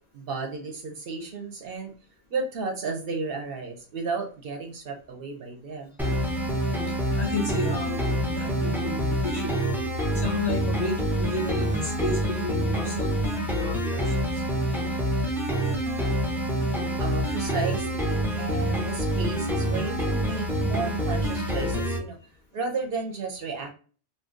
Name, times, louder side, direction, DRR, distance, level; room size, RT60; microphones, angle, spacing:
voice 1, 0.1-1.9 2.3-5.9 17.0-22.2 22.5-23.7, right 4 dB, 60° right, 3 dB, 0.8 m, -33 dB
sound 1, 6.0-22.0, equal, 5° right, 0.4 m, -27 dB
voice 2, 7.2-9.6 10.1-14.4, left 3 dB, 45° left, -1 dB, 0.7 m, -32 dB
2.6 x 2.2 x 3.6 m, 0.40 s
omnidirectional pair, 1.2 m